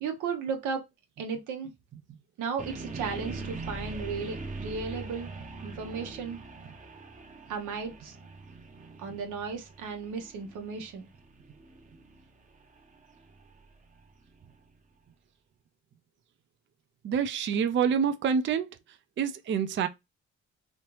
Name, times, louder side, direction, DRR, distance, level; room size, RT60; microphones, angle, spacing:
voice 1, 0.0-0.8 1.2-1.7 2.4-5.3 5.6-6.4 7.5-8.1 9.0-11.1, right 5 dB, 90° right, 1.0 m, -35 dB
sound 1, 2.6-14.5, right 3 dB, 25° right, 0.8 m, -43 dB
voice 2, 17.0-18.7 19.2-19.9, right 7 dB, 40° right, 0.4 m, -27 dB
3.1 x 2.8 x 3.1 m
cardioid pair, 90°, 30 cm